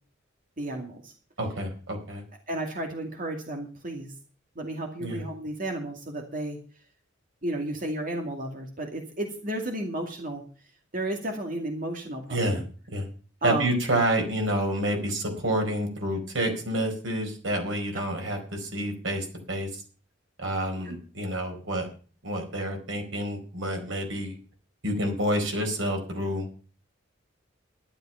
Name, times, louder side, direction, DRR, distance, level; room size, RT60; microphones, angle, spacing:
voice 1, 0.6-1.1 2.5-4.1 4.6-6.6 7.4-10.4 10.9-12.6 13.4-13.7 20.8-21.0, right 1 dB, 45° right, 2 dB, 2.3 m, -33 dB
voice 2, 1.4-2.2 5.0-5.2 12.3-12.6 12.9-13.1 13.4-19.8 20.4-21.9 22.2-24.4 24.8-26.5, right 1 dB, 85° right, 3 dB, 4.5 m, -28 dB
12.0 x 11.5 x 5.7 m, 0.40 s
head